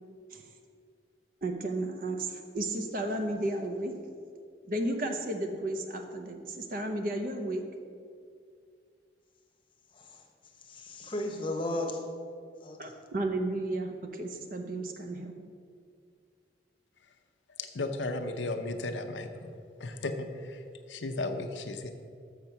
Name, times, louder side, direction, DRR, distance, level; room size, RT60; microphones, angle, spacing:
voice 1, 1.4-3.9 4.7-7.6 12.8-15.3, right 1 dB, 50° right, 4 dB, 0.8 m, -33 dB
voice 2, 9.9-10.3 10.5-12.0 12.6-12.9, left 1 dB, 30° left, 2 dB, 0.9 m, -35 dB
voice 3, 17.6-19.5 19.8-20.6 20.9-21.9, left 2 dB, 90° left, 6 dB, 0.7 m, -35 dB
6.7 x 6.5 x 5.8 m, 2.2 s
head